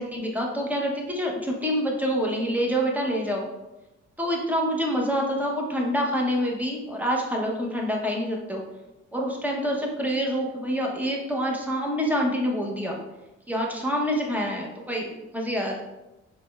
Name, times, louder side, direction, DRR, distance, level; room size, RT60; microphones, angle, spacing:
voice 1, 0.0-3.4 4.2-8.6 9.1-13.0 13.5-15.8, equal, 5° right, -1 dB, 0.7 m, -26 dB
4.9 x 2.1 x 2.2 m, 1.0 s
cardioid pair, 90°, 30 cm